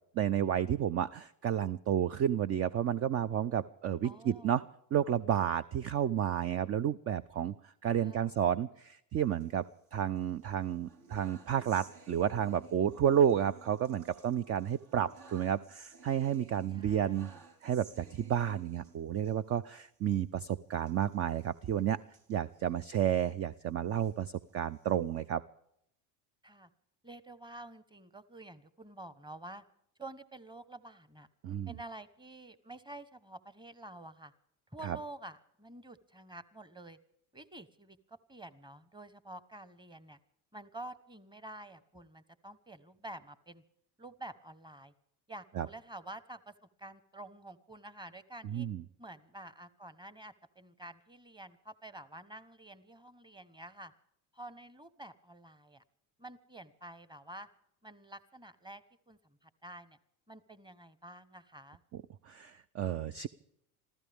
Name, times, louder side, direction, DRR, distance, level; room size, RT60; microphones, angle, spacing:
voice 1, 0.1-4.6 4.9-7.5 7.8-9.6 9.9-17.3 17.6-22.0 22.3-25.4 31.4-31.7 34.8-35.0 45.6-45.7 48.4-48.8 61.9-63.3, right 9 dB, 30° right, 14 dB, 0.5 m, -31 dB
voice 2, 4.0-4.6 7.9-8.4 16.7-17.4 26.4-26.7 27.0-29.6 30.0-31.3 31.7-34.3 34.7-37.0 37.3-40.2 40.5-43.6 44.0-44.9 45.3-48.7 49.0-53.9 54.3-55.8 56.2-57.5 57.8-60.0 60.3-61.8, right 1 dB, 10° right, 15 dB, 1.1 m, -49 dB
sound 1, 9.2-10.2 10.6-19.4 19.7-19.9 20.1-20.3 20.8-23.3 23.8-25.2, right 5 dB, 60° right, 3.7 m, -57 dB
26.5 x 15.0 x 3.6 m, 0.75 s
hypercardioid pair, 80°, 48 cm